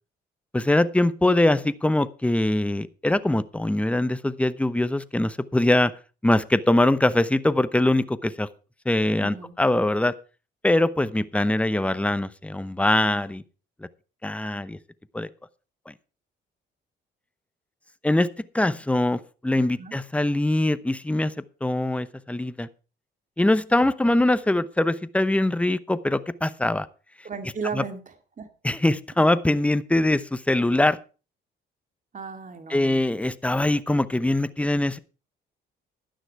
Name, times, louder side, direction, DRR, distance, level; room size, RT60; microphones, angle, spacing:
voice 1, 0.5-5.9 6.2-8.5 8.8-10.2 10.6-13.4 14.2-14.8 15.1-15.3 15.9-16.0 18.0-18.3 18.5-21.3 21.6-22.7 23.4-26.9 27.7-27.8 28.6-31.0 32.7-35.0, left 1 dB, 5° left, 14 dB, 0.8 m, -22 dB
voice 2, 9.2-9.6 19.5-20.0 27.2-28.0 28.4-28.5 32.1-33.0, right 5 dB, 40° right, 6 dB, 2.4 m, -35 dB
12.0 x 10.0 x 4.7 m, 0.34 s
cardioid pair, 90°, 20 cm